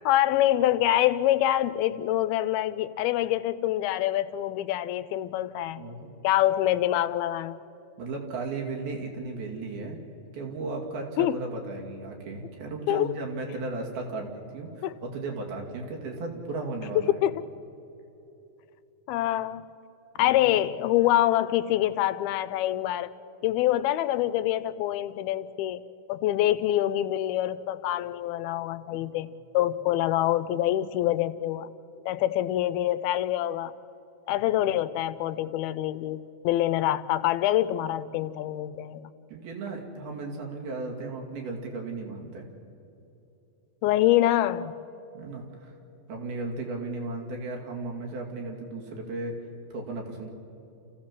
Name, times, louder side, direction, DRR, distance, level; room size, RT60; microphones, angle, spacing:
voice 1, 0.0-5.8 6.2-7.6 11.2-11.4 12.9-13.1 14.8-14.9 17.2-17.4 19.1-19.6 20.2-23.1 23.4-25.8 26.1-29.3 29.5-31.7 32.1-33.7 34.3-39.1 43.8-44.7, left 13 dB, 85° left, 14 dB, 2.5 m, -25 dB
voice 2, 5.7-6.1 8.0-10.0 10.3-17.1 20.2-20.6 28.9-29.1 34.6-34.7 39.3-42.5 45.1-45.7 46.1-49.4 49.7-50.3, right 3 dB, 75° right, 1 dB, 4.4 m, -35 dB
29.5 x 15.0 x 7.4 m, 2.9 s
omnidirectional pair, 4.4 m